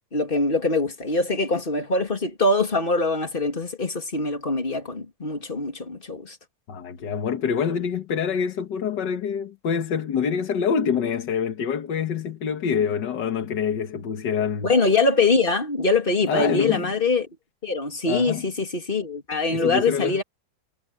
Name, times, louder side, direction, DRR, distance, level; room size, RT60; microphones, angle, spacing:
voice 1, 0.1-6.4 14.6-17.3 17.6-20.2, left 3 dB, 25° left, 3.0 m, -23 dB
voice 2, 6.7-14.7 16.3-16.9 18.1-18.4 19.5-20.2, left 7 dB, 65° left, 2.0 m, -26 dB
omnidirectional pair, 2.1 m